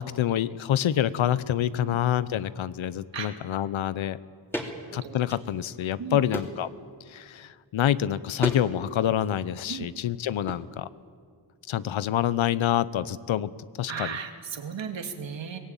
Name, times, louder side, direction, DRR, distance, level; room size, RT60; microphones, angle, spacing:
voice 1, 0.0-4.2 4.9-6.7 7.1-10.9 11.7-13.5 13.8-14.2, left 11 dB, 85° left, 16 dB, 0.9 m, -27 dB
sound 1, 4.5-4.7 5.2-5.9 6.3-6.7 8.4-8.7 8.9-9.4 10.5-10.6, equal, 5° left, 3.0 m, -33 dB
voice 2, 13.9-15.6, right 7 dB, 70° right, 4 dB, 2.6 m, -35 dB
23.5 x 18.5 x 9.1 m, 2.1 s
wide cardioid pair, 125°, 46 cm